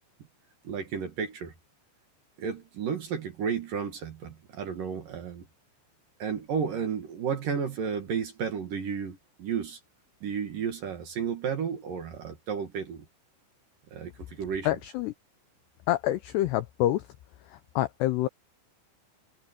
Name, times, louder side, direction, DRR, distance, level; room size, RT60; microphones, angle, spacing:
voice 1, 0.6-1.5 2.4-5.5 6.2-9.8 10.2-13.1 13.9-14.8, right 6 dB, 55° right, 2.8 m, -32 dB
voice 2, 14.7-15.1 15.9-17.0 17.8-18.3, left 14 dB, 90° left, 2.4 m, -26 dB
omnidirectional pair, 5.8 m